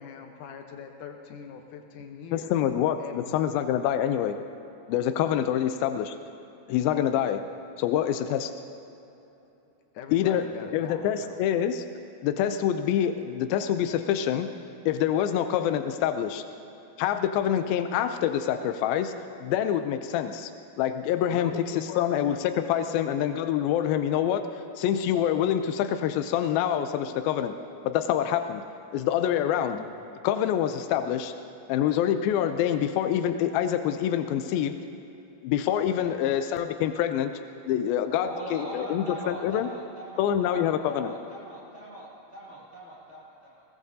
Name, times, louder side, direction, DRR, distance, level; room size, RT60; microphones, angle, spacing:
voice 1, 0.0-2.5 3.0-3.5 9.9-11.4 21.3-22.1 22.9-23.1 29.7-29.8 35.8-36.2, left 7 dB, 70° left, 4 dB, 2.3 m, -42 dB
voice 2, 2.3-4.4 4.9-6.2 6.7-7.4 7.8-8.5 10.1-10.5 10.7-11.8 12.2-14.5 14.9-16.4 17.0-19.1 19.4-20.5 20.8-27.6 27.8-28.6 28.9-29.8 30.2-31.3 31.7-34.8 35.4-37.3 37.7-39.7 40.2-41.1, left 10 dB, 90° left, 8 dB, 2.4 m, -26 dB
voice 3, 38.2-43.6, right 1 dB, 25° right, -9 dB, 1.8 m, -41 dB
21.5 x 19.5 x 2.7 m, 2.9 s
omnidirectional pair, 4.1 m